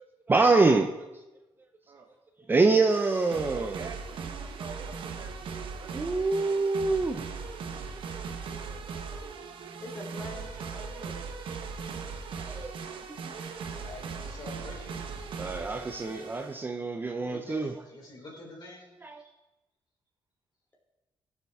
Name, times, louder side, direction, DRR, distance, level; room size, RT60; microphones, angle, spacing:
voice 1, 0.3-0.9 2.5-3.9 5.9-7.3 12.4-12.7 13.1-13.2 15.4-17.7 19.0-19.2, right 3 dB, 20° right, 5 dB, 0.6 m, -25 dB
sound 1, 2.9-16.6, right 5 dB, 70° right, 1.0 m, -39 dB
voice 2, 3.3-6.4 8.5-9.6, right 4 dB, 45° right, 3 dB, 1.3 m, -48 dB
voice 3, 9.8-11.3, left 1 dB, 20° left, -2 dB, 3.1 m, -44 dB
voice 4, 13.6-16.3 17.2-19.3, left 2 dB, 50° left, -1 dB, 3.5 m, -48 dB
16.0 x 7.1 x 3.6 m, 1.0 s
cardioid pair, 125°, 9 cm